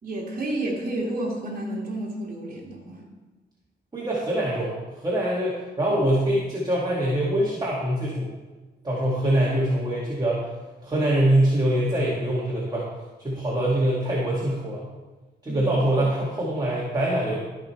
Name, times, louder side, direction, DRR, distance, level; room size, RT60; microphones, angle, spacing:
voice 1, 0.0-3.0 15.5-15.7, right 1 dB, 45° right, -3 dB, 2.1 m, -30 dB
voice 2, 3.9-4.8 5.0-8.3 8.8-10.5 10.8-12.8 13.2-14.8 15.4-17.4, right 1 dB, 20° right, -6 dB, 2.1 m, -24 dB
14.0 x 5.3 x 4.5 m, 1.2 s
cardioid pair, 105°, 19 cm